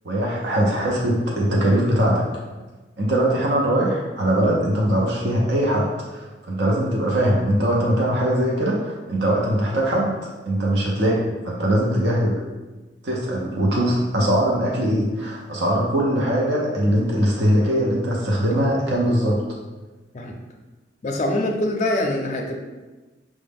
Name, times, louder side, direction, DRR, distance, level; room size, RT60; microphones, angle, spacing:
voice 1, 0.0-2.3 3.0-12.5 13.0-19.4, right 1 dB, 70° right, -3 dB, 0.6 m, -21 dB
voice 2, 21.0-22.6, left 1 dB, 40° left, 1 dB, 0.4 m, -24 dB
4.6 x 2.1 x 3.5 m, 1.2 s
head